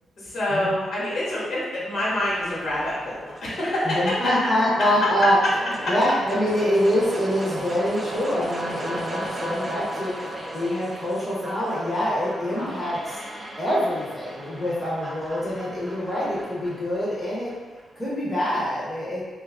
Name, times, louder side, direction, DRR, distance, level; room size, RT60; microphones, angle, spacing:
voice 1, 0.2-4.0 5.8-5.9 12.6-12.7, left 1 dB, 55° left, -7 dB, 1.1 m, -27 dB
sound 1, 2.1-18.1, right 1 dB, 15° right, 0.3 m, -36 dB
voice 2, 3.8-5.4 5.9-13.2 13.6-17.5 18.0-19.3, equal, 10° left, -8 dB, 0.7 m, -25 dB
2.7 x 2.2 x 3.5 m, 1.3 s
wide cardioid pair, 140°, 0 cm